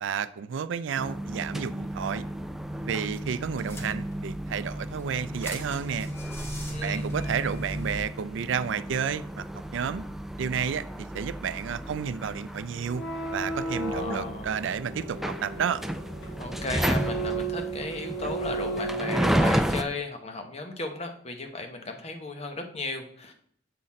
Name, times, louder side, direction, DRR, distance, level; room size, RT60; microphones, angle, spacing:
voice 1, 0.0-2.2 2.8-6.1 6.8-9.5 9.7-10.0 10.4-10.8 11.1-13.0 13.3-15.8, right 7 dB, 80° right, 15 dB, 0.4 m, -31 dB
sound 1, 1.0-19.8, equal, ahead, 0.3 m, -33 dB
car start, 3.1-3.2 3.6-4.4 4.9-8.0, equal, 15° left, 1.1 m, -40 dB
voice 2, 6.7-7.1 13.9-14.5 16.4-23.3, left 2 dB, 35° left, 5 dB, 0.9 m, -35 dB
sound 2, 12.8-19.8, right 3 dB, 80° left, 1.3 m, -34 dB
7.5 x 4.0 x 4.2 m, 0.63 s
head